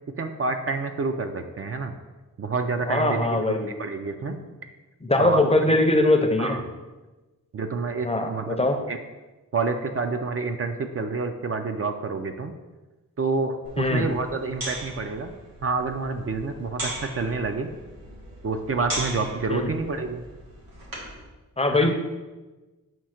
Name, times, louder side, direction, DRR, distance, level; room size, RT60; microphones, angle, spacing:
voice 1, 0.2-1.9 2.4-4.4 5.2-5.4 6.4-6.6 7.5-8.6 8.9-9.0 9.5-12.5 13.2-15.3 15.6-17.7 18.4-20.2 21.7-21.9, right 4 dB, 45° right, 6 dB, 0.4 m, -28 dB
voice 2, 2.9-3.7 5.0-6.6 8.0-8.8 13.8-14.0 19.5-19.7 21.6-21.9, left 2 dB, 20° left, 4 dB, 0.5 m, -21 dB
sound 1, 13.6-21.2, right 1 dB, 90° right, 1.9 m, -38 dB
7.3 x 2.7 x 5.7 m, 1.2 s
wide cardioid pair, 145°, 34 cm